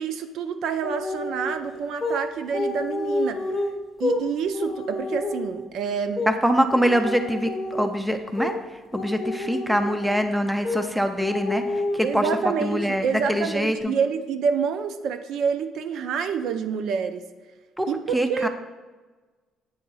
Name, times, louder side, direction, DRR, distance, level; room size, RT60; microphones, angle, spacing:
voice 1, 0.0-3.7 4.0-6.3 12.0-17.2 17.9-18.5, right 6 dB, 60° right, 9 dB, 0.4 m, -27 dB
sound 1, 0.8-1.6 2.0-2.2 2.5-4.2 4.5-5.6 6.2-6.4 6.7-8.0 8.4-8.6 8.9-10.3 10.6-10.9 11.2-12.4 12.7-12.9 13.3-13.8, left 2 dB, 20° left, 0.8 m, -29 dB
voice 2, 6.3-8.5 8.9-12.2 12.6-14.0 17.8-17.9 18.1-18.5, equal, 5° right, 7 dB, 0.4 m, -24 dB
8.8 x 3.1 x 5.4 m, 1.3 s
cardioid pair, 160°, 0 cm